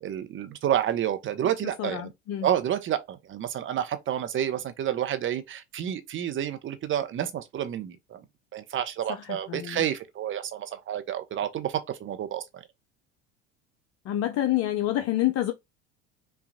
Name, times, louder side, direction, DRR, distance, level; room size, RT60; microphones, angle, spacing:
voice 1, 0.0-2.1 2.4-8.2 8.5-12.6, right 10 dB, 35° right, 0.7 m, -29 dB
voice 2, 1.8-2.5 9.1-9.8 14.0-15.5, left 13 dB, 45° left, 0.6 m, -28 dB
5.4 x 2.3 x 2.6 m
hypercardioid pair, 70°, 34 cm